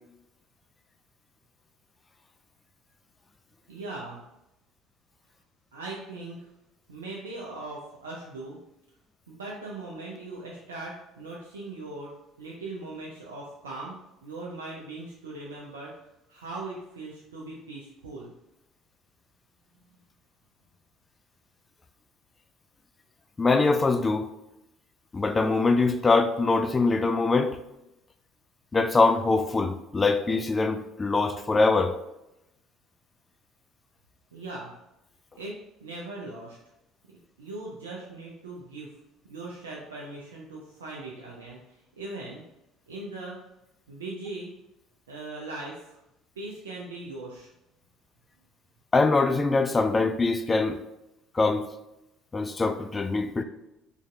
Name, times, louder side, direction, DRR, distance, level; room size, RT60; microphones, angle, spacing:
voice 1, 3.7-4.2 5.7-6.5 6.9-8.6 9.3-12.1 12.4-15.9 16.3-18.3 34.3-34.7 35.3-36.6 37.4-39.0 39.2-41.6 42.0-42.4 42.9-43.4 43.9-44.5 45.1-46.0 46.4-47.5, right 2 dB, 80° right, 0.5 m, -39 dB
voice 2, 23.4-24.3 25.1-27.6 28.7-31.9 48.9-50.8 51.3-51.7 52.3-53.4, left 3 dB, 25° left, 0.3 m, -23 dB
3.9 x 3.3 x 2.5 m
figure-of-eight pair, 55°, 0 cm